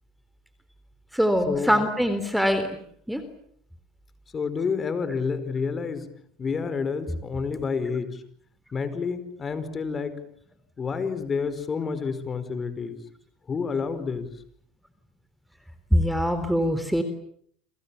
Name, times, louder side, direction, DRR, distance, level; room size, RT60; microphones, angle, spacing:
voice 1, 1.1-2.7 3.1-3.2 15.9-17.0, equal, ahead, 10 dB, 3.7 m, -23 dB
voice 2, 4.3-6.1 6.4-8.2 8.7-10.2 10.8-13.0 13.5-14.3, left 5 dB, 30° left, 12 dB, 4.8 m, -29 dB
30.0 x 27.0 x 7.2 m, 0.66 s
supercardioid pair, 100°, 0 cm